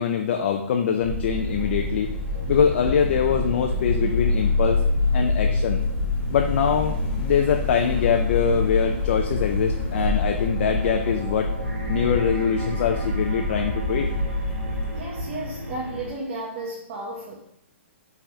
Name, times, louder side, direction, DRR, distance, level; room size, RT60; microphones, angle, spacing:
voice 1, 0.0-2.1 2.5-4.8 5.1-5.8 6.3-11.5 11.9-14.1, left 7 dB, 60° left, 4 dB, 0.4 m, -23 dB
sound 1, 1.0-15.0, left 1 dB, 35° left, 1.7 m, -29 dB
sound 2, 1.4-16.1, left 3 dB, 80° right, 1.2 m, -28 dB
voice 2, 14.9-17.4, right 2 dB, 45° right, -3 dB, 0.9 m, -33 dB
5.3 x 3.4 x 2.9 m, 0.75 s
hypercardioid pair, 135°, 7 cm